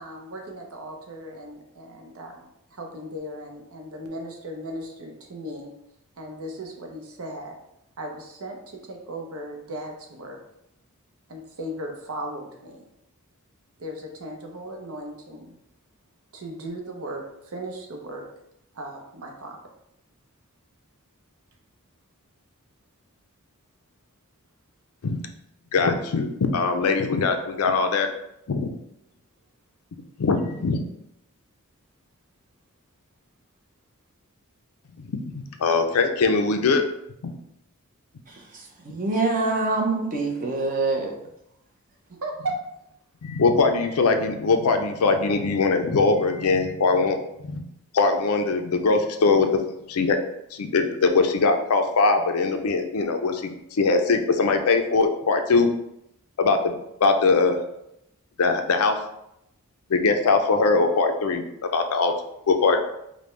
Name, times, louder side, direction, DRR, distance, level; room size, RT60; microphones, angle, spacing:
voice 1, 0.0-5.7 6.2-7.6 8.0-10.4 11.3-12.8 13.8-15.5 16.3-18.3 18.7-19.6 42.2-42.6 53.0-53.1, right 1 dB, 70° right, 2 dB, 0.8 m, -36 dB
voice 2, 25.7-28.1 28.5-28.7 30.2-30.8 35.0-36.8 37.2-37.3 43.2-47.2 47.4-47.6 47.9-49.6 49.9-50.2 50.5-55.7 56.4-57.6 58.4-59.0 59.9-61.4 61.7-62.1 62.5-62.8, left 4 dB, 75° left, 6 dB, 0.5 m, -21 dB
voice 3, 38.3-41.1, right 3 dB, 40° right, 0 dB, 0.8 m, -25 dB
5.0 x 2.2 x 3.2 m, 0.81 s
head